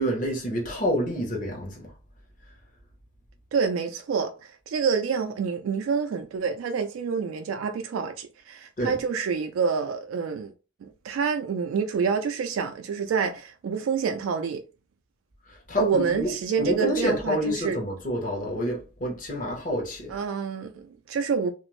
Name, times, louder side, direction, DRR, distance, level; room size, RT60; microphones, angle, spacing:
voice 1, 0.0-1.9 8.8-9.0 15.5-20.2, equal, 40° left, 0.9 m, -28 dB
voice 2, 3.5-10.5 10.8-14.6 15.8-17.8 20.1-21.5, right 6 dB, 90° right, 0.3 m, -27 dB
2.4 x 2.0 x 3.0 m
head